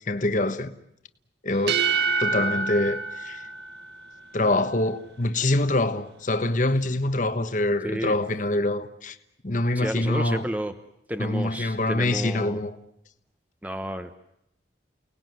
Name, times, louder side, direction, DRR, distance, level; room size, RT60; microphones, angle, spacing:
voice 1, 0.1-0.7 1.4-1.9 2.2-3.4 4.3-9.2 9.4-10.4 11.2-12.7, left 2 dB, 45° left, 1.3 m, -25 dB
sound 1, 1.5-4.3, right 4 dB, 60° right, 1.5 m, -27 dB
voice 2, 7.8-8.2 9.7-10.8 11.1-12.6 13.6-14.2, right 1 dB, 10° right, 1.0 m, -31 dB
30.0 x 19.5 x 9.4 m
head